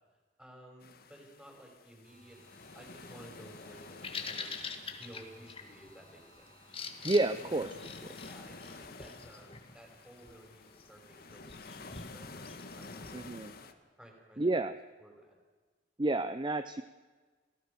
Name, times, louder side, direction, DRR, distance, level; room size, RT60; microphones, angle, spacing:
voice 1, 0.4-2.4 2.7-6.5 7.3-7.7 8.2-14.6 15.0-15.4, right 1 dB, 5° right, 0 dB, 6.2 m, -55 dB
sound 1, 0.8-13.7, left 3 dB, 55° left, 1.7 m, -51 dB
sound 2, 2.0-8.8, right 2 dB, 55° right, 6.0 m, -62 dB
Bird vocalization bird call bird song, 3.7-13.1, left 5 dB, 30° left, 1.9 m, -46 dB
voice 2, 7.0-7.7 13.1-13.5 14.4-14.8 16.0-16.8, right 2 dB, 25° right, 11 dB, 0.7 m, -30 dB
28.5 x 17.5 x 7.0 m, 1.4 s
head